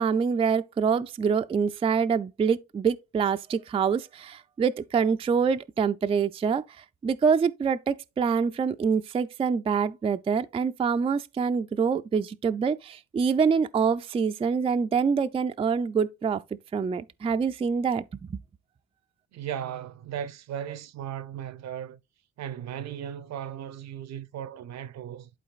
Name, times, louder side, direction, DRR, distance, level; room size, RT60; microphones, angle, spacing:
voice 1, 0.0-6.6 7.0-16.4 16.7-18.4, right 6 dB, 20° right, 0.3 m, -25 dB
voice 2, 19.3-22.0 22.4-25.3, right 9 dB, 60° right, 0.6 m, -36 dB
11.5 x 3.9 x 2.4 m
cardioid pair, 90°, 30 cm